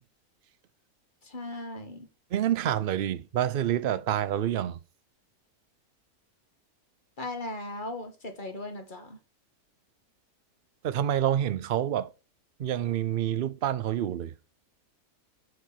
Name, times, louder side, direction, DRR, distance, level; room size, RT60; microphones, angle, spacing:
voice 1, 1.2-2.1 7.2-9.2, left 2 dB, 35° left, 1.8 m, -38 dB
voice 2, 2.3-4.8 10.8-12.1 12.6-14.3, right 11 dB, 55° right, 0.6 m, -27 dB
7.7 x 5.1 x 6.7 m
omnidirectional pair, 1.6 m